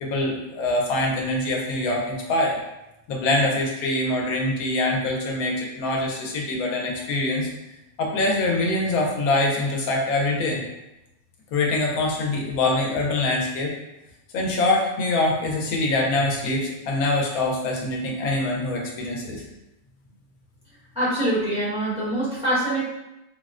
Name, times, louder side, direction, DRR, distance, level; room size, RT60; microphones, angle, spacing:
voice 1, 0.0-2.6 3.1-7.5 8.0-10.6 11.5-13.7 14.3-19.4, left 2 dB, 85° left, -1 dB, 1.1 m, -24 dB
voice 2, 20.9-22.8, right 1 dB, 5° right, -11 dB, 0.9 m, -24 dB
3.6 x 2.0 x 2.4 m, 0.92 s
omnidirectional pair, 1.5 m